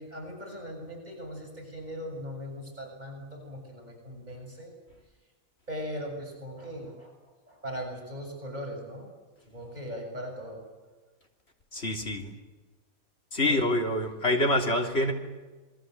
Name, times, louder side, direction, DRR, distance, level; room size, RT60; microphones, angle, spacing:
voice 1, 0.0-4.8 5.7-9.1 9.4-10.6 13.5-13.7, equal, 30° right, 0 dB, 7.0 m, -39 dB
voice 2, 11.7-12.3 13.3-15.1, left 1 dB, 45° left, 2 dB, 3.7 m, -26 dB
27.5 x 21.5 x 7.9 m, 1.3 s
omnidirectional pair, 1.5 m